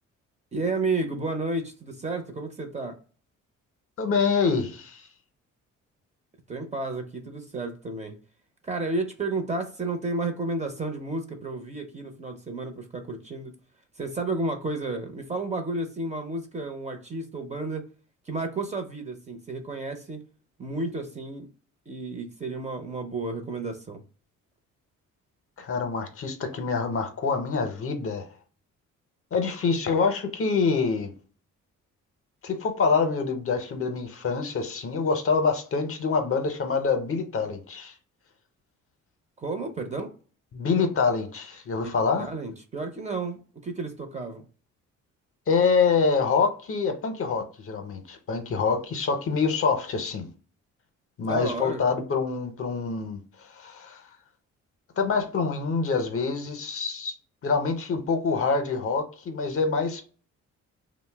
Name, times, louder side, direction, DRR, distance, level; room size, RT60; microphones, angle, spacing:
voice 1, 0.5-3.0 6.5-8.2 8.6-13.5 14.0-17.9 18.3-20.2 20.6-21.5 21.9-24.0 39.4-40.1 42.2-44.5 51.2-51.8, right 2 dB, 25° right, 0.6 m, -32 dB
voice 2, 4.0-5.1 25.6-28.3 29.3-31.1 32.4-37.9 40.5-42.3 45.5-50.3 51.2-54.0 55.0-57.1 57.4-60.0, left 5 dB, 45° left, 0.6 m, -26 dB
2.6 x 2.0 x 3.3 m
cardioid pair, 90°, 30 cm